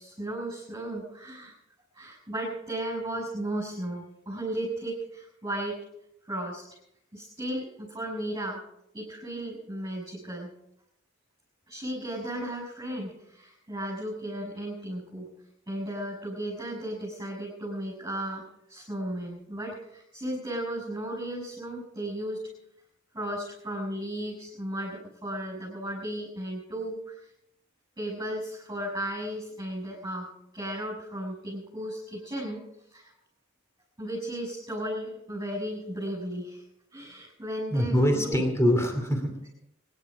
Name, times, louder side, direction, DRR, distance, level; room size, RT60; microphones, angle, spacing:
voice 1, 0.0-1.5 1.9-5.9 6.3-6.7 7.1-8.6 8.9-10.5 11.7-15.3 15.7-18.4 18.7-22.5 23.1-27.3 28.0-33.1 34.0-36.6 36.9-38.4, right 1 dB, 15° right, -4 dB, 6.4 m, -35 dB
voice 2, 37.7-39.5, equal, 15° left, 4 dB, 2.7 m, -24 dB
25.0 x 11.0 x 5.0 m, 0.77 s
head